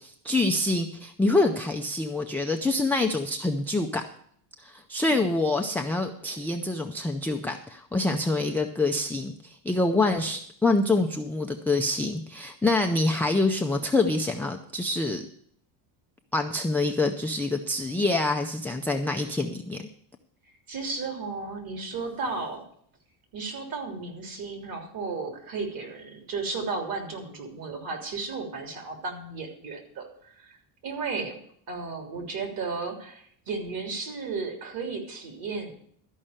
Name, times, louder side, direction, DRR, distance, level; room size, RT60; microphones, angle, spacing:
voice 1, 0.0-4.0 4.6-15.2 16.3-19.9, left 2 dB, 5° left, 1 dB, 0.4 m, -26 dB
voice 2, 20.7-22.6 23.3-30.6 30.8-31.4 31.7-35.7, right 4 dB, 45° right, 3 dB, 3.4 m, -34 dB
13.0 x 5.5 x 8.7 m, 0.63 s
cardioid pair, 150°, 49 cm